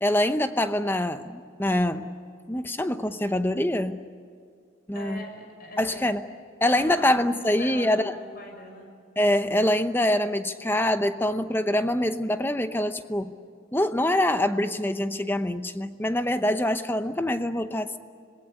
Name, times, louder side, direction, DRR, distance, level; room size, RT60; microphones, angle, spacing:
voice 1, 0.0-2.1 2.5-4.0 4.9-5.2 5.8-6.2 6.6-8.1 9.2-13.3 13.7-18.0, left 1 dB, 10° left, 10 dB, 0.8 m, -25 dB
voice 2, 4.9-6.0 6.6-7.1 7.6-8.9, left 1 dB, 45° left, 3 dB, 6.5 m, -42 dB
26.5 x 20.5 x 9.8 m, 2.2 s
head